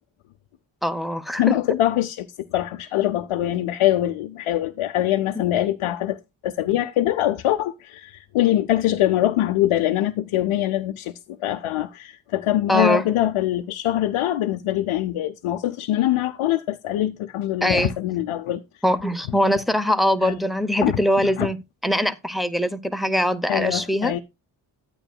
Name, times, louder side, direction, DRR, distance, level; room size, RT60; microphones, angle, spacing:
voice 1, 0.8-1.6 5.4-5.5 12.7-13.0 17.6-17.9 18.8-21.6 21.8-24.1, equal, ahead, 0.7 m, -22 dB
voice 2, 1.4-2.3 2.5-6.2 6.4-11.1 11.4-18.6 20.2-20.4 20.8-21.0 21.2-21.5 23.5-24.2, left 13 dB, 85° left, 0.6 m, -23 dB
11.5 x 8.9 x 2.3 m
cardioid pair, 55°, 49 cm